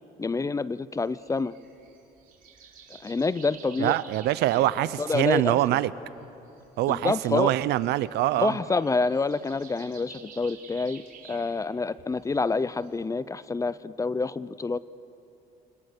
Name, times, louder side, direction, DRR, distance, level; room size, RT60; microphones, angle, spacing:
voice 1, 0.2-1.6 3.0-4.0 4.5-4.6 5.0-5.8 6.9-7.5 8.4-11.0 11.3-14.8, left 3 dB, 20° left, 17 dB, 0.6 m, -27 dB
sound 1, 0.9-13.0, right 7 dB, 55° right, 4.3 m, -52 dB
voice 2, 3.8-5.9 6.8-8.5, right 15 dB, 80° right, 17 dB, 0.8 m, -24 dB
29.5 x 25.0 x 6.8 m, 3.0 s
cardioid pair, 110°, 17 cm